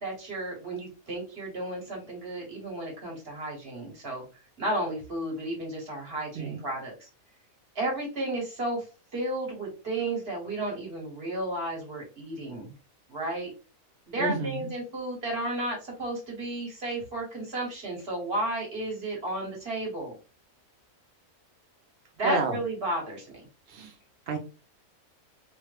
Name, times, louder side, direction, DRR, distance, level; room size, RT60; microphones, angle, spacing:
voice 1, 0.0-4.2 4.6-7.1 7.7-8.8 9.1-12.7 13.1-13.5 14.1-20.2 22.2-23.4, right 1 dB, 45° right, -2 dB, 1.5 m, -33 dB
voice 2, 14.2-14.7 22.2-22.6 23.7-23.9 24.3-24.4, right 3 dB, 65° right, 3 dB, 0.6 m, -30 dB
3.1 x 2.1 x 3.2 m, 0.32 s
omnidirectional pair, 1.5 m